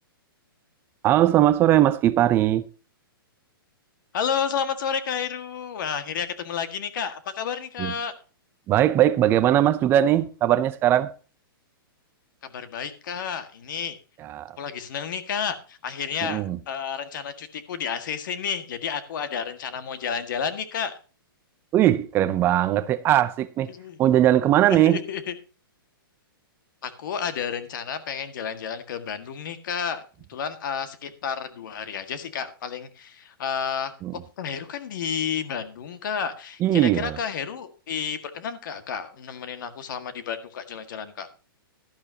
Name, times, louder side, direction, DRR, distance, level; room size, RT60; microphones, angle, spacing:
voice 1, 1.0-2.7 7.8-7.9 8.7-11.1 14.2-14.5 16.2-16.6 21.7-23.7 24.0-25.0 34.0-34.1 36.6-37.2, right 12 dB, 20° right, 0.5 m, -20 dB
voice 2, 4.1-8.1 12.4-14.0 14.6-21.0 23.7-24.0 24.7-25.3 26.8-30.0 30.3-33.9 34.4-41.3, left 7 dB, 60° left, 1.8 m, -31 dB
12.0 x 11.5 x 2.8 m
hypercardioid pair, 155°, 12 cm